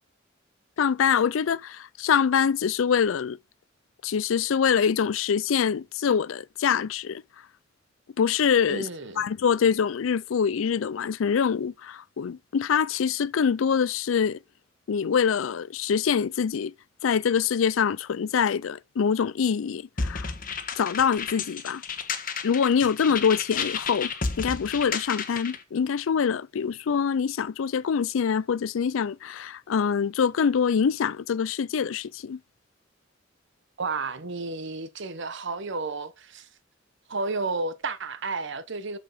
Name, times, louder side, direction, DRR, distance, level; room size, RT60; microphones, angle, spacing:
voice 1, 0.8-3.4 4.0-7.2 8.2-8.9 9.2-14.4 14.9-16.7 17.0-20.3 20.7-21.8 22.4-32.4, left 7 dB, 75° left, 0.4 m, -25 dB
voice 2, 8.7-9.3 33.8-36.5 37.1-39.0, right 3 dB, 65° right, 1.0 m, -32 dB
sound 1, 20.0-25.6, left 5 dB, 45° left, 1.2 m, -32 dB
6.9 x 6.3 x 4.9 m
head